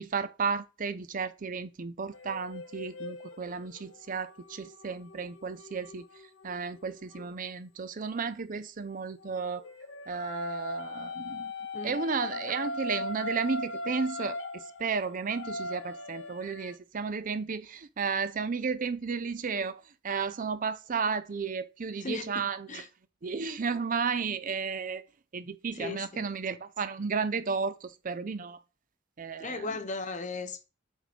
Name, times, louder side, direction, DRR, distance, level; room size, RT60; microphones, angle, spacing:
voice 1, 0.0-6.1 6.4-9.6 10.1-11.5 11.8-22.8 23.2-25.0 25.3-28.6 29.2-29.7, right 5 dB, 40° right, 0.5 m, -33 dB
sound 1, 2.1-7.3 9.2-16.8, left 2 dB, 65° left, 0.8 m, -39 dB
voice 2, 22.0-22.4 22.7-22.9 25.7-26.2 29.4-30.6, left 3 dB, 40° left, 1.0 m, -37 dB
7.9 x 3.6 x 5.1 m
head